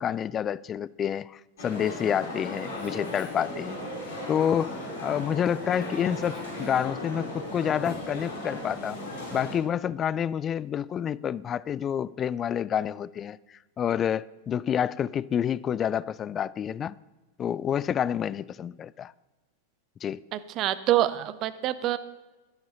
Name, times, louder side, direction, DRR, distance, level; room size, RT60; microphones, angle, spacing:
voice 1, 0.0-3.8 4.3-4.8 5.0-9.0 9.3-13.4 13.8-17.0 17.4-19.1 20.0-20.2, left 9 dB, 25° left, 0.3 m, -28 dB
sound 1, 1.6-9.5, left 1 dB, 55° left, 4.7 m, -36 dB
voice 2, 20.3-22.0, right 13 dB, 35° right, 0.7 m, -26 dB
11.0 x 11.0 x 5.5 m
figure-of-eight pair, 90°, 0 cm